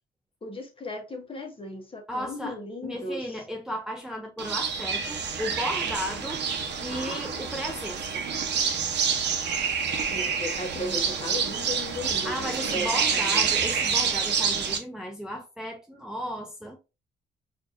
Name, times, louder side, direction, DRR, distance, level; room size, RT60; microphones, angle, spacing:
voice 1, 0.4-3.4 9.9-13.5, left 1 dB, 25° left, 1.1 m, -36 dB
voice 2, 2.1-2.6 2.8-6.4 6.8-8.2 12.2-16.8, equal, 5° right, 0.6 m, -34 dB
sound 1, 4.4-14.8, right 6 dB, 60° right, 0.8 m, -28 dB
4.5 x 2.6 x 2.5 m
cardioid pair, 90°, 20 cm